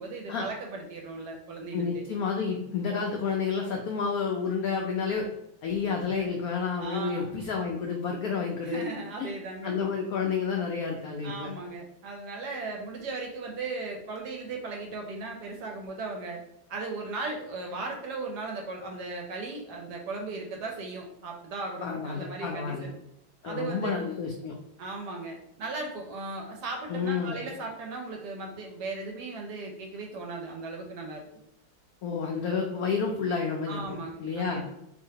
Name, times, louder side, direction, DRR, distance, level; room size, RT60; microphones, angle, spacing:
voice 1, 0.0-2.1 6.2-6.3 6.8-7.7 8.6-9.8 11.2-16.4 16.7-23.0 23.4-23.9 24.8-31.3 33.7-34.7, right 3 dB, 70° right, 1 dB, 1.1 m, -37 dB
voice 2, 1.7-5.3 5.6-8.8 9.2-9.3 9.6-11.5 21.8-22.8 23.4-24.5 26.9-27.4 32.0-34.6, left 5 dB, 80° left, 1 dB, 0.8 m, -30 dB
4.2 x 2.7 x 2.8 m, 0.82 s
omnidirectional pair, 2.1 m